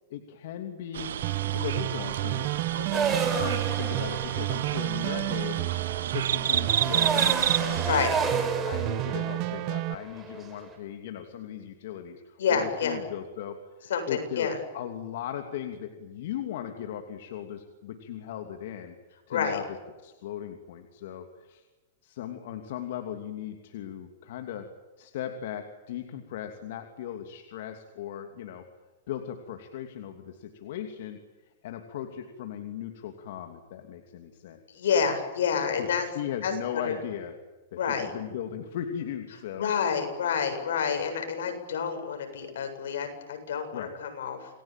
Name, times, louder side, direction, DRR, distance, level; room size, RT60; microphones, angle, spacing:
voice 1, 0.1-1.1 1.5-2.5 3.3-5.6 6.1-7.9 8.1-8.2 8.6-18.9 19.3-19.6 20.0-21.7 22.0-24.7 25.0-28.6 29.1-31.2 31.5-34.8 35.8-37.3 37.7-39.7 43.7-43.9, left 10 dB, 60° left, 5 dB, 2.9 m, -37 dB
sound 1, 0.9-8.1, right 10 dB, 85° right, 1.1 m, -30 dB
sound 2, 1.2-9.9, right 18 dB, 40° right, 1.1 m, -31 dB
voice 2, 2.8-3.1 7.8-8.1 12.4-13.0 13.9-14.6 19.3-19.6 34.7-36.1 36.4-37.0 37.8-38.1 39.6-44.5, left 6 dB, 80° left, 5 dB, 7.9 m, -28 dB
sound 3, 2.9-10.7, right 5 dB, 15° right, 5.2 m, -32 dB
29.0 x 21.0 x 9.1 m, 1.2 s
supercardioid pair, 155°, 0 cm